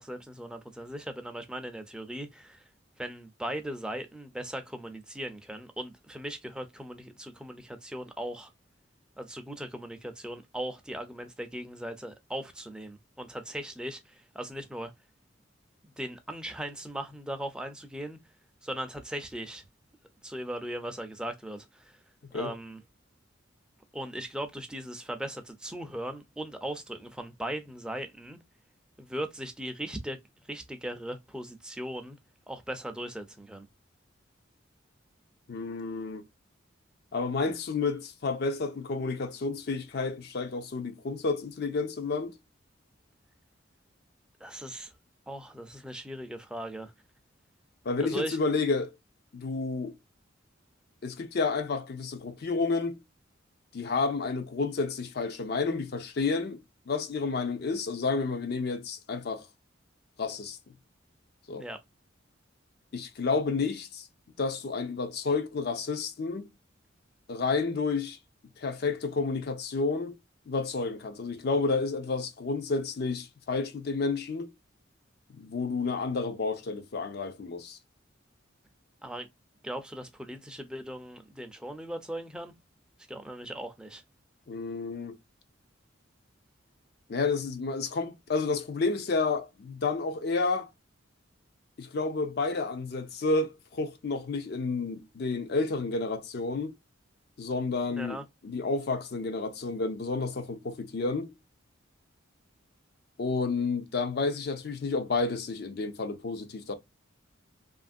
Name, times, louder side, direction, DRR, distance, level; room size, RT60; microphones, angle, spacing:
voice 1, 0.0-2.6 3.0-8.5 9.2-14.9 15.8-18.2 18.6-19.6 20.2-22.0 22.3-22.8 23.9-28.4 29.0-30.2 30.5-32.2 32.5-33.7 44.4-44.9 45.3-46.9 48.0-48.4 61.6-61.8 79.0-79.3 79.6-82.5 83.1-84.0 97.9-98.2, right 1 dB, 5° right, 0.4 m, -38 dB
voice 2, 35.5-36.2 37.1-42.3 47.9-48.9 49.3-49.9 51.0-53.0 53.7-59.5 60.2-60.6 61.5-61.6 62.9-64.1 64.4-66.5 67.3-68.2 68.6-70.2 70.5-74.5 75.3-77.8 84.5-85.2 87.1-90.7 91.8-96.8 97.4-98.2 98.4-101.3 103.2-106.8, left 4 dB, 55° left, 0.4 m, -30 dB
2.9 x 2.5 x 2.4 m
head